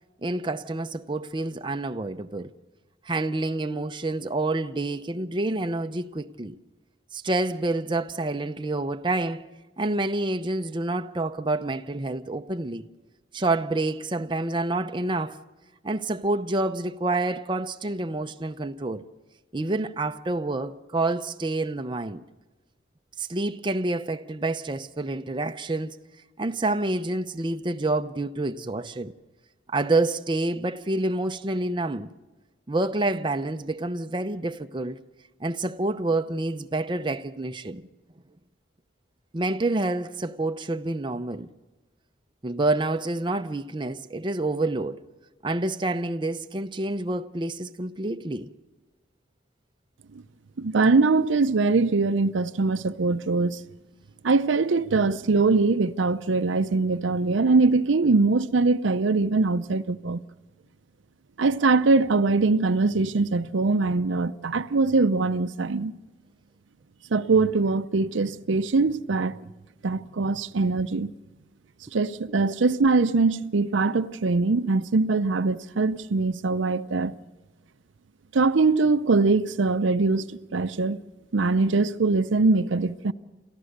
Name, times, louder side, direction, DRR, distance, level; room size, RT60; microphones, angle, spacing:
voice 1, 0.2-2.5 3.0-6.6 7.1-9.5 9.8-12.9 13.3-15.4 15.8-19.0 19.5-22.2 23.2-26.0 26.4-29.1 29.7-32.1 32.7-35.0 35.4-37.8 39.3-41.5 42.4-45.0 45.4-48.5, right 2 dB, 25° right, 0.6 m, -28 dB
voice 2, 50.6-53.6 54.2-60.2 61.4-65.9 67.1-69.4 69.8-71.1 71.9-77.1 78.3-81.0 81.3-83.1, right 3 dB, 75° right, 0.6 m, -22 dB
29.0 x 14.0 x 6.6 m
head